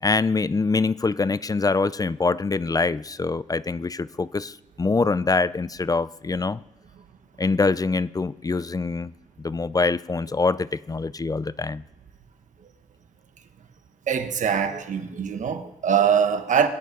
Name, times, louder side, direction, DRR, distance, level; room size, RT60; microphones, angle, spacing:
voice 1, 0.0-6.6 7.4-9.1 9.4-11.8, left 3 dB, 30° left, 0.5 m, -24 dB
voice 2, 14.1-16.7, right 7 dB, 75° right, 1.3 m, -23 dB
22.5 x 9.3 x 5.3 m
cardioid pair, 70°, 13 cm